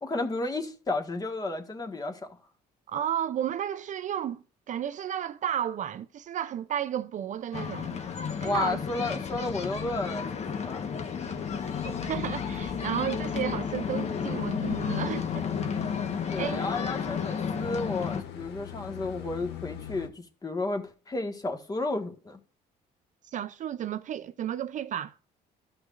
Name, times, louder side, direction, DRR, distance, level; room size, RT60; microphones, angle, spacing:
voice 1, 0.0-2.3 8.4-10.8 11.5-11.7 16.3-22.4, left 2 dB, 20° left, 1.6 m, -32 dB
voice 2, 2.9-8.0 8.4-8.8 11.8-15.5 16.4-16.6 23.3-25.1, right 10 dB, 50° right, 0.5 m, -33 dB
sound 1, 7.5-18.2, left 6 dB, 40° left, 1.1 m, -32 dB
sound 2, 11.2-20.1, left 11 dB, 85° left, 1.4 m, -40 dB
13.5 x 6.2 x 2.5 m
cardioid pair, 110°, 17 cm